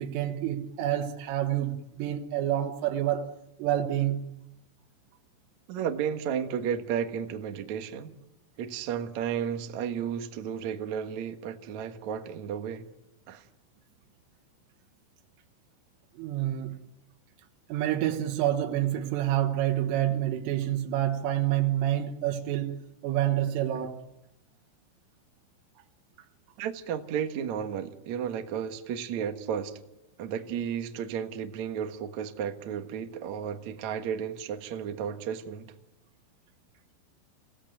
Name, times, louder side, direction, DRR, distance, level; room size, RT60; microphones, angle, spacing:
voice 1, 0.0-4.3 16.2-16.8 17.7-24.0, right 12 dB, 85° right, 3.9 m, -28 dB
voice 2, 5.7-8.1 8.6-12.9 13.3-13.5 26.6-29.8 30.2-35.7, right 8 dB, 65° right, 1.9 m, -33 dB
30.0 x 17.0 x 9.2 m
omnidirectional pair, 5.6 m